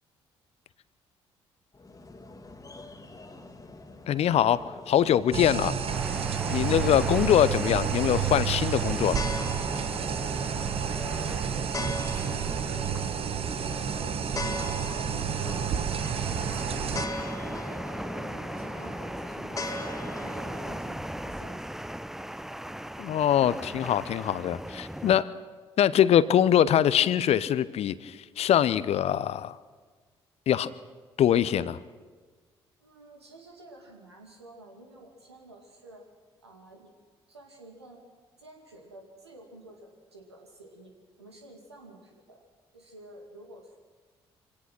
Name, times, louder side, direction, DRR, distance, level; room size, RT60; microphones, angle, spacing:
sound 1, 1.7-20.7, left 2 dB, 25° left, 2.2 m, -41 dB
voice 1, 4.1-5.7 6.5-9.2 23.0-25.3 25.8-29.6 30.5-30.7 31.2-31.8, left 10 dB, 50° left, 18 dB, 0.8 m, -23 dB
sound 2, 5.3-17.1, right 8 dB, 45° right, 1.2 m, -30 dB
sound 3, 5.9-25.2, right 1 dB, 5° right, 0.6 m, -39 dB
voice 2, 10.9-15.6 16.1-17.8 18.2-19.9 20.2-21.6 32.8-36.0 36.4-36.9 37.3-38.0 38.4-42.4 42.7-43.8, right 1 dB, 90° right, 1 dB, 2.3 m, -50 dB
25.0 x 17.5 x 6.1 m, 1.4 s
figure-of-eight pair, 45°, 13 cm